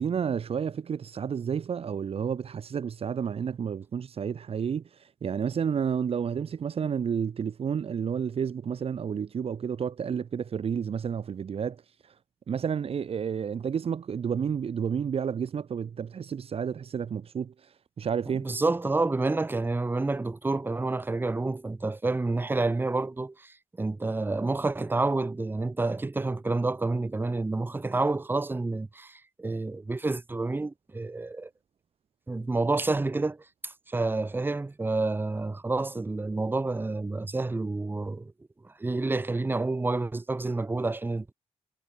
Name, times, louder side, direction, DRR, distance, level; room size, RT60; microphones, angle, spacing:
voice 1, 0.0-11.8 12.5-17.5 18.0-18.5, right 7 dB, 50° right, 3.0 m, -30 dB
voice 2, 18.2-31.5 32.3-38.3 38.6-41.3, right 3 dB, 15° right, 1.8 m, -29 dB
wide cardioid pair, 165°, 12 cm